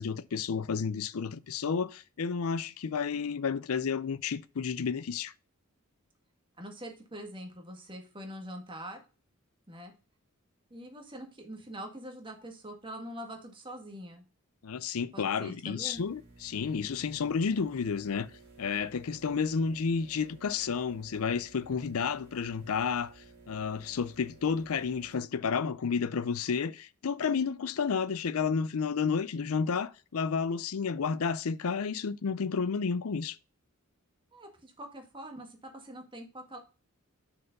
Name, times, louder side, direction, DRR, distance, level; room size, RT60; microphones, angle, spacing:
voice 1, 0.0-5.3 14.6-18.3 18.6-33.4, left 5 dB, 75° left, 0.5 m, -31 dB
voice 2, 6.6-9.0 9.7-9.9 10.7-14.2 15.1-16.0 34.3-36.6, equal, 25° right, 1.7 m, -44 dB
sound 1, 15.9-25.1, right 3 dB, 55° right, 3.3 m, -55 dB
6.5 x 4.8 x 5.2 m
head